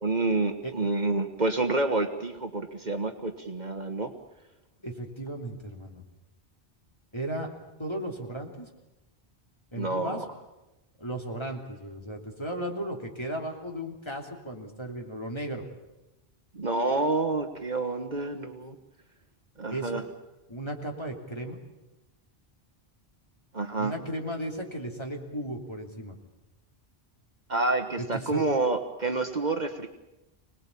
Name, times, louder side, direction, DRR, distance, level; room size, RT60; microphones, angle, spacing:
voice 1, 0.0-4.1 9.8-10.3 16.5-18.8 19.6-20.0 23.5-23.9 27.5-29.9, right 3 dB, 45° right, 6 dB, 1.4 m, -28 dB
voice 2, 4.8-6.0 7.1-7.5 7.8-8.7 9.7-10.2 11.0-15.6 19.7-20.0 20.5-21.6 23.8-26.2 28.2-28.4, right 1 dB, 25° left, 1 dB, 3.1 m, -35 dB
25.5 x 19.5 x 8.5 m, 0.99 s
omnidirectional pair, 1.1 m